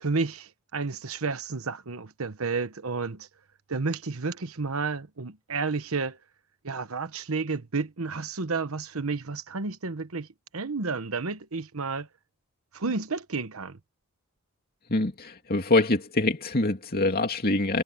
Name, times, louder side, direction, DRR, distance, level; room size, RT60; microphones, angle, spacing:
voice 1, 0.0-3.3 3.7-6.2 6.6-10.3 10.5-12.1 12.7-13.8, right 4 dB, 75° right, 1.1 m, -31 dB
voice 2, 14.9-17.8, left 2 dB, 45° left, 2.6 m, -25 dB
head